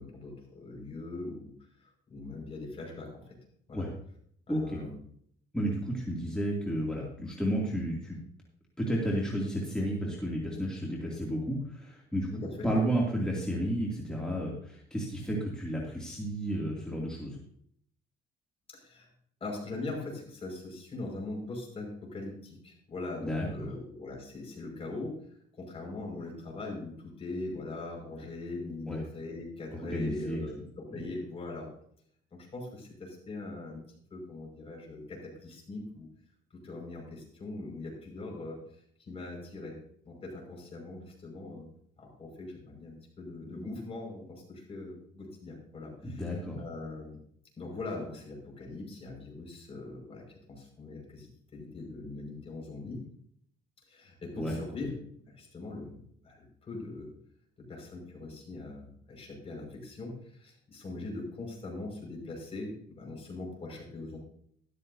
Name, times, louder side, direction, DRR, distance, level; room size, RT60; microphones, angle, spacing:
voice 1, 0.0-1.5 1.8-3.2 3.7-3.9 4.5-5.0 12.3-12.7 18.7-19.1 19.4-25.2 25.5-31.7 32.3-33.8 34.1-36.1 36.5-38.6 39.0-39.8 40.1-41.7 42.0-47.2 47.6-53.0 53.9-54.9 55.3-57.1 57.6-64.2, left 2 dB, 35° left, 0 dB, 5.5 m, -41 dB
voice 2, 4.5-4.8 5.5-8.2 8.8-12.3 12.6-17.4 23.2-23.7 28.9-29.0 29.7-30.4 30.9-31.0 46.0-46.6 54.4-54.6, equal, 5° left, -4 dB, 2.6 m, -32 dB
13.0 x 13.0 x 2.7 m, 0.64 s
cardioid pair, 110°, 17 cm